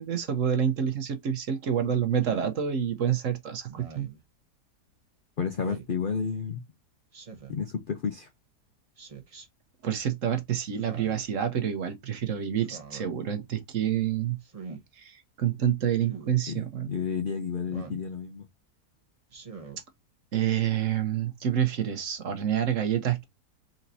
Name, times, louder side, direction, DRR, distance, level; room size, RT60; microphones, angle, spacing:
voice 1, 0.0-4.1 9.8-14.4 15.0-16.9 20.3-23.2, right 9 dB, 55° right, 1.1 m, -28 dB
Speech synthesizer, 2.2-2.6 3.7-4.2 5.6-5.9 7.1-7.6 9.0-9.5 10.7-11.3 12.6-13.1 14.4-14.8 16.0-16.3 17.7-18.1 19.3-19.8, right 5 dB, 30° right, 0.7 m, -44 dB
voice 2, 5.4-6.6 7.5-8.3 16.5-18.5, left 6 dB, 75° left, 0.4 m, -31 dB
4.2 x 4.0 x 2.7 m
omnidirectional pair, 1.8 m